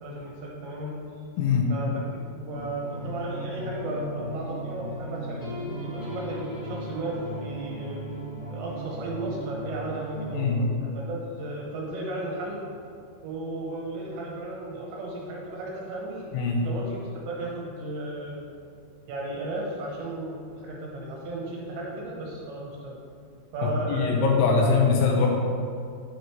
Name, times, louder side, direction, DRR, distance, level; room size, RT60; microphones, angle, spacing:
voice 1, 0.0-1.0 1.7-2.0 2.4-8.0 8.5-12.6 13.2-16.3 16.6-18.5 19.1-23.0 23.5-24.6, right 1 dB, 70° right, -3 dB, 3.1 m, -35 dB
voice 2, 1.4-1.7 10.3-10.6 16.3-16.6 23.6-25.3, left 4 dB, 80° left, 0 dB, 3.1 m, -22 dB
sound 1, 2.5-10.6, right 1 dB, 35° left, 1.6 m, -36 dB
10.5 x 7.9 x 3.3 m, 2.4 s
omnidirectional pair, 5.8 m